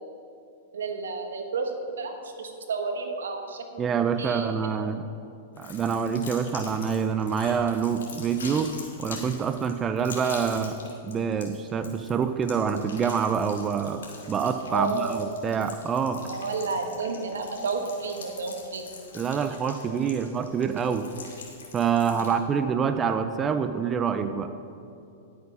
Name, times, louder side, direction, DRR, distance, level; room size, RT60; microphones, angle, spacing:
voice 1, 0.7-3.8 4.2-4.5 14.7-15.1 16.3-18.9 22.1-22.3, right 4 dB, 90° right, 5 dB, 1.4 m, -31 dB
voice 2, 3.8-5.0 5.6-8.7 9.0-10.8 11.1-14.0 14.3-16.2 19.1-21.1 21.7-24.5, right 6 dB, 25° right, 9 dB, 0.5 m, -26 dB
sound 1, 5.6-22.4, left 4 dB, 85° left, 2.4 m, -44 dB
11.0 x 8.1 x 5.5 m, 2.6 s
hypercardioid pair, 125°, 0 cm